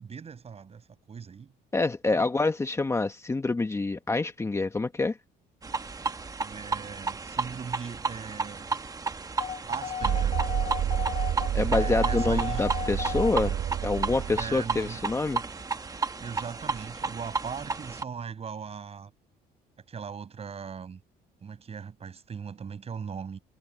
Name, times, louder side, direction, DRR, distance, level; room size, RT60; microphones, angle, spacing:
voice 1, 0.0-1.5 2.1-2.3 6.4-8.8 9.7-10.4 11.7-12.6 14.4-15.0 16.2-19.1 19.9-21.0 21.4-23.4, right 6 dB, 35° right, 6.6 m, -39 dB
voice 2, 1.7-5.2 11.5-13.5 13.8-15.4, left 3 dB, 15° left, 1.2 m, -27 dB
sound 1, 5.6-18.0, right 4 dB, 20° right, 1.2 m, -33 dB
sound 2, 9.4-13.4, left 8 dB, 35° left, 3.6 m, -35 dB
sound 3, 10.0-15.2, right 10 dB, 55° right, 1.0 m, -29 dB
cardioid pair, 110°, 17 cm